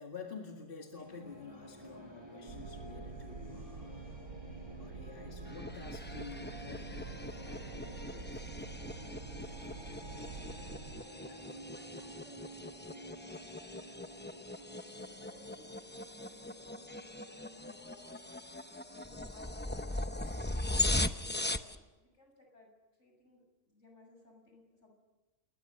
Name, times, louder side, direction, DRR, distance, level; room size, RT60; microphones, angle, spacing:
voice 1, 0.0-4.3 4.7-8.4, left 4 dB, 40° left, 1 dB, 2.1 m, -49 dB
sound 1, 0.9-19.1, right 1 dB, 20° right, 6.3 m, -52 dB
sound 2, 2.5-11.0, right 4 dB, 80° right, 1.6 m, -47 dB
sound 3, 5.5-21.8, left 2 dB, 10° left, 0.5 m, -40 dB
voice 2, 9.6-10.7 11.1-18.4 18.6-25.0, left 1 dB, 60° left, 1 dB, 7.4 m, -62 dB
29.0 x 21.5 x 6.9 m, 1.2 s
omnidirectional pair, 1.4 m